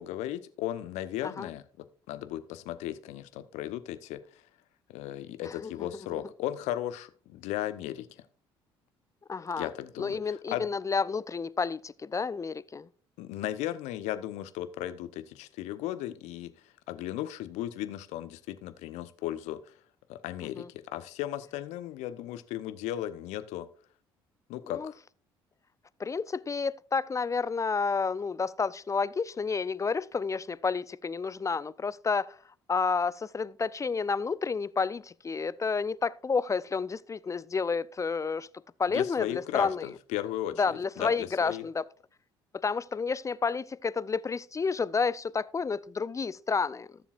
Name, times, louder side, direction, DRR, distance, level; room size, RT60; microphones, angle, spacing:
voice 1, 0.0-1.6 2.1-4.2 4.9-8.1 9.6-10.2 10.5-10.7 13.2-16.5 16.9-19.6 20.1-23.7 24.5-25.0 38.9-41.6, left 13 dB, 65° left, 0.8 m, -36 dB
voice 2, 5.4-6.2 9.3-9.7 10.0-12.9 20.6-20.7 24.6-24.9 26.0-32.4 32.7-38.5 38.8-39.9 40.6-41.8 42.5-47.0, left 5 dB, 25° left, 0.5 m, -30 dB
17.0 x 7.1 x 2.4 m
hypercardioid pair, 50°, 12 cm